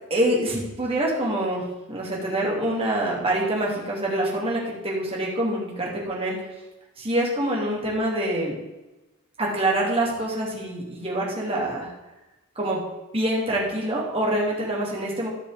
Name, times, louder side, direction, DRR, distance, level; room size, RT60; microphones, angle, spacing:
voice 1, 0.1-1.6 1.9-6.5 7.0-8.6 9.4-11.9 12.5-12.8 13.1-15.3, right 1 dB, 25° right, -3 dB, 3.1 m, -25 dB
14.5 x 5.5 x 5.2 m, 1.0 s
head